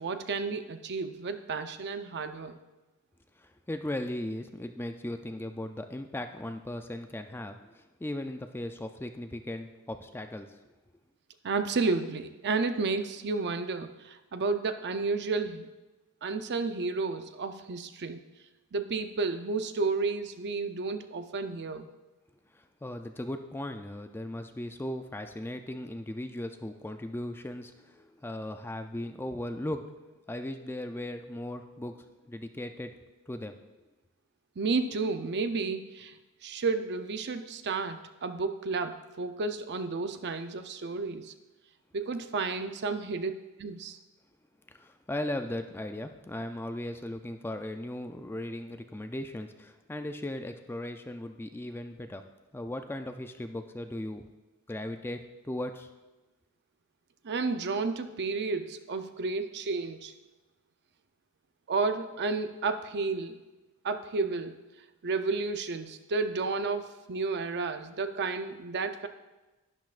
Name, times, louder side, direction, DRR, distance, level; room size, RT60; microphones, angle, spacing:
voice 1, 0.0-2.6 11.4-15.7 16.2-18.2 18.7-21.9 34.6-36.1 36.4-41.3 41.9-43.3 43.6-44.0 57.2-60.1 61.7-63.4 63.8-64.6 65.0-69.1, right 4 dB, 50° right, 8 dB, 0.6 m, -31 dB
voice 2, 3.4-10.5 22.5-32.9 33.3-33.6 44.7-52.2 52.5-54.3 54.7-55.9, left 1 dB, 10° left, 7 dB, 0.4 m, -37 dB
12.0 x 10.5 x 2.5 m, 1.1 s
head